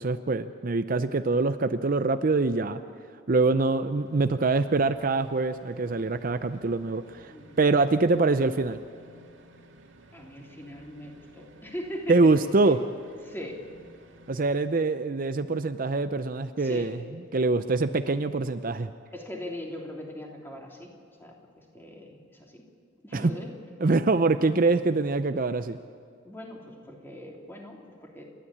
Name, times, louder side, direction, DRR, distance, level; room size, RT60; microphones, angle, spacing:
voice 1, 0.0-2.8 3.3-8.8 12.1-12.8 14.3-17.0 17.3-18.9 23.1-23.3 23.8-25.8, right 3 dB, 45° right, 10 dB, 0.6 m, -24 dB
sound 1, 3.8-14.6, equal, 70° right, 2.1 m, -54 dB
voice 2, 10.1-12.3 12.6-12.7 13.2-13.6 16.6-16.9 19.1-20.9 21.2-22.6 23.0-23.5 26.2-28.2, left 1 dB, 10° left, 0 dB, 3.1 m, -40 dB
29.0 x 12.5 x 8.7 m, 2.3 s
head